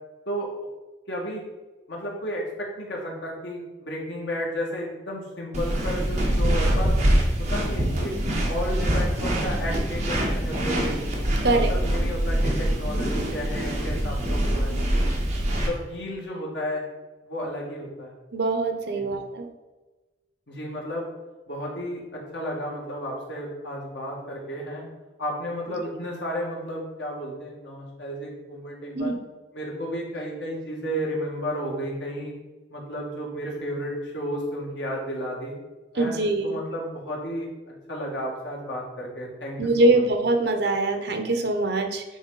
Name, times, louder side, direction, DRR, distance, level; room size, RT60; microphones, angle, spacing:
voice 1, 1.1-1.4 1.9-6.9 7.5-8.2 8.5-11.0 11.4-14.8 15.7-16.8 17.2-18.1 18.9-19.1 20.5-21.1 21.5-24.8 25.2-29.2 29.5-32.3 32.7-35.5 35.9-37.5 37.9-40.0, equal, 80° left, -2 dB, 1.9 m, -32 dB
sound 1, 5.5-15.7, right 1 dB, 40° right, 1.5 m, -24 dB
voice 2, 18.3-19.4 28.9-29.1 36.0-36.5 39.6-42.0, right 2 dB, 70° right, 6 dB, 0.9 m, -23 dB
9.2 x 3.7 x 4.0 m, 1.2 s
head